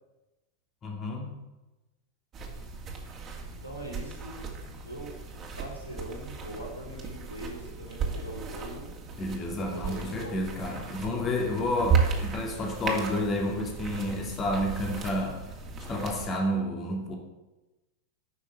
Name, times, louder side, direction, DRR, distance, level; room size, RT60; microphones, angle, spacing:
voice 1, 0.8-1.3 9.2-15.4 15.9-17.2, left 1 dB, 25° left, 1 dB, 2.5 m, -30 dB
sound 1, 2.3-16.3, right 5 dB, 25° right, 2.7 m, -35 dB
voice 2, 3.4-5.2 5.6-8.9 9.5-10.4, right 1 dB, 85° left, -4 dB, 4.4 m, -42 dB
12.5 x 6.6 x 8.9 m, 1.1 s
figure-of-eight pair, 90°, 0 cm